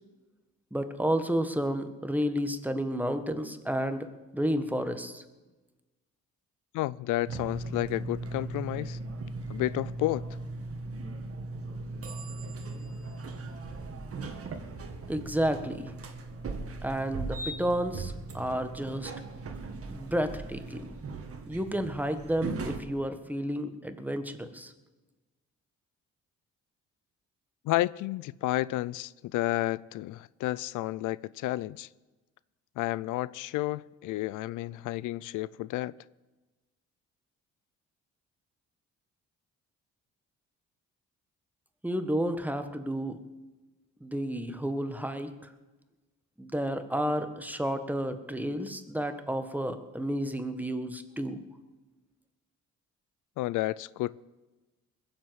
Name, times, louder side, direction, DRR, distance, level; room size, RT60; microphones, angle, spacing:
voice 1, 0.7-4.1 4.3-5.2 15.1-15.9 16.8-19.1 19.9-20.9 21.5-24.7 41.8-43.2 44.0-45.3 46.4-51.4, equal, 5° right, 1.5 m, -31 dB
voice 2, 6.7-9.0 9.5-10.3 27.6-31.9 32.8-35.9 53.4-54.2, left 17 dB, 85° left, 0.5 m, -31 dB
sound 1, 7.3-22.8, right 3 dB, 50° right, 1.9 m, -38 dB
20.5 x 7.9 x 8.0 m
cardioid pair, 90°, 30 cm